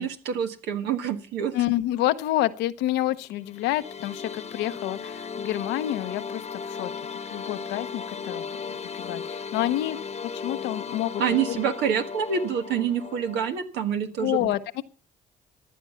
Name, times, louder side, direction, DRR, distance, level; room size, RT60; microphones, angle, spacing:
voice 1, 0.0-1.5 11.2-14.5, right 7 dB, 85° right, 6 dB, 1.5 m, -27 dB
voice 2, 1.5-6.9 7.3-8.5 8.9-11.2 11.5-11.6 14.2-14.8, left 15 dB, 90° left, 12 dB, 0.9 m, -28 dB
sound 1, 3.4-13.6, left 6 dB, 40° left, 1.1 m, -36 dB
15.0 x 10.5 x 5.7 m, 0.39 s
supercardioid pair, 65°, 17 cm